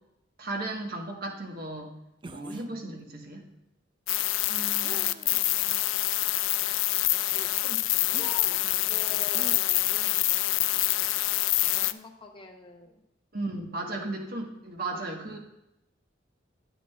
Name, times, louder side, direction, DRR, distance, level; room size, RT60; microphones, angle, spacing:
voice 1, 0.4-1.9 2.3-3.4 13.3-15.4, right 2 dB, 50° right, 2 dB, 1.3 m, -35 dB
sound 1, 2.2-2.7 4.8-5.5 6.2-6.3 8.1-8.3 9.3-9.6, right 2 dB, 25° right, 0.4 m, -43 dB
sound 2, 4.1-11.9, left 17 dB, 80° left, 0.3 m, -26 dB
voice 2, 4.5-6.0 7.3-10.3 11.7-13.0 13.9-14.3 14.9-15.2, left 2 dB, 25° left, 3 dB, 0.8 m, -46 dB
9.7 x 9.4 x 2.4 m, 0.88 s
head